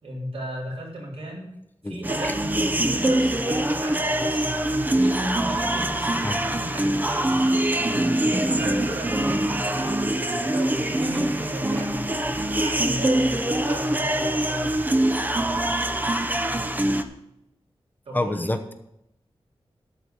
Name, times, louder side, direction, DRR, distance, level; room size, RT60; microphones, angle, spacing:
voice 1, 0.0-1.6 1.8-7.3 7.9-14.8 18.1-18.5, right 1 dB, 85° right, -3 dB, 4.1 m, -35 dB
sound 1, 2.0-17.0, right 1 dB, 20° right, 0.8 m, -24 dB
voice 2, 18.1-18.7, left 1 dB, 20° left, 8 dB, 0.9 m, -27 dB
12.5 x 4.7 x 8.6 m, 0.82 s
wide cardioid pair, 110°, 10 cm